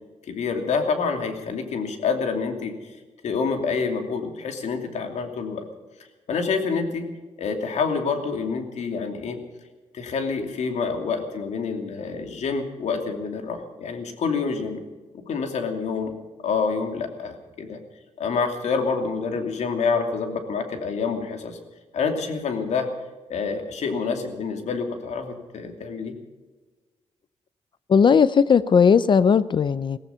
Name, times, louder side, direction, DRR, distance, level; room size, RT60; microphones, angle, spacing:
voice 1, 0.3-2.8 3.2-5.7 6.3-7.1 7.4-9.4 9.9-14.8 15.1-16.1 16.4-17.8 18.2-21.6 21.9-22.9 23.3-26.1, left 5 dB, 70° left, 5 dB, 2.7 m, -27 dB
voice 2, 27.9-30.0, left 6 dB, 40° left, 17 dB, 0.5 m, -17 dB
16.5 x 15.5 x 5.6 m, 1.3 s
cardioid pair, 110°, 12 cm